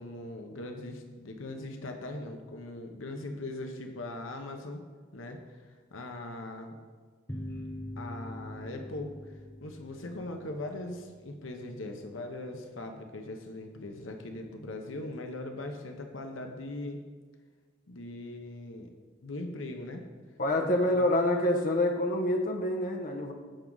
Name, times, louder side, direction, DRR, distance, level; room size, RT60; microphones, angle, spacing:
voice 1, 0.0-4.8 5.1-6.8 8.0-9.3 9.6-17.0 17.9-18.9 19.2-20.1 20.6-21.0, left 2 dB, 80° left, 4 dB, 0.9 m, -40 dB
sound 1, 7.3-12.4, left 1 dB, 15° left, 1.2 m, -44 dB
voice 2, 20.4-23.3, left 1 dB, 45° left, 2 dB, 1.1 m, -27 dB
15.5 x 6.0 x 3.9 m, 1.5 s
head